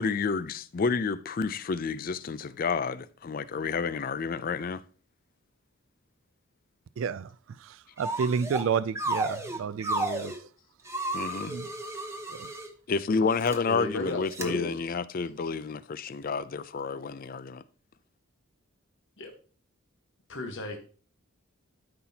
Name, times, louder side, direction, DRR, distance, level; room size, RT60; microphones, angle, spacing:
voice 1, 0.0-4.8 11.1-11.5 12.9-17.6, left 4 dB, 40° left, 0.4 m, -30 dB
voice 2, 7.0-10.3 11.5-11.7 12.3-12.5, right 6 dB, 65° right, 0.3 m, -31 dB
sound 1, 8.0-8.7 9.0-10.4 10.9-12.7 13.3-13.6 14.3-14.5, right 2 dB, 15° right, 0.9 m, -32 dB
voice 3, 13.7-14.7 19.2-19.3 20.3-20.8, left 1 dB, 60° left, 1.2 m, -34 dB
12.5 x 5.8 x 2.8 m
head